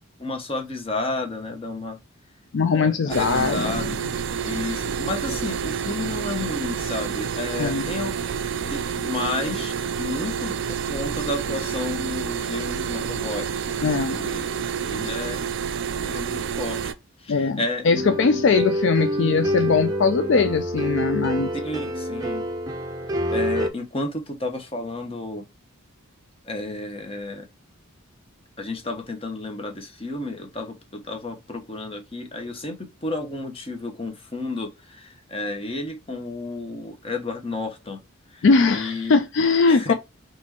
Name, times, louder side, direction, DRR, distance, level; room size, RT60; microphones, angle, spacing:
voice 1, 0.0-2.0 2.7-3.9 4.4-8.2 8.7-13.5 13.7-13.9 14.1-14.5 14.9-15.5 16.0-16.9 17.2-18.1 18.3-18.4 21.5-22.5 23.3-25.4 26.4-27.5 28.6-38.0 38.3-38.5 38.7-39.1 39.7-39.9, left 2 dB, 25° left, 0.9 m, -32 dB
voice 2, 2.5-4.0 7.6-7.8 13.8-14.2 17.3-21.5 38.4-39.9, left 4 dB, 60° left, 0.4 m, -21 dB
sound 1, 3.1-16.9, right 7 dB, 60° right, 0.4 m, -29 dB
sound 2, 17.9-23.7, equal, 15° right, 0.6 m, -26 dB
4.2 x 3.1 x 2.8 m
head